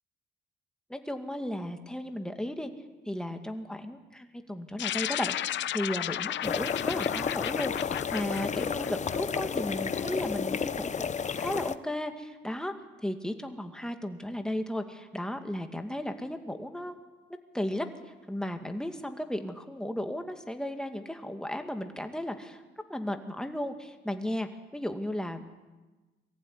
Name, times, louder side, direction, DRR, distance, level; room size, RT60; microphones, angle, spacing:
voice 1, 0.9-2.7 3.1-12.7 13.0-17.0 17.5-17.9 18.3-22.6 22.9-25.5, left 1 dB, 5° left, 5 dB, 2.2 m, -35 dB
sound 1, 4.8-9.5, left 12 dB, 70° left, 0.8 m, -34 dB
sound 2, 6.4-11.8, left 6 dB, 35° left, 0.9 m, -32 dB
23.0 x 15.0 x 9.7 m, 1.2 s
cardioid pair, 90°, 20 cm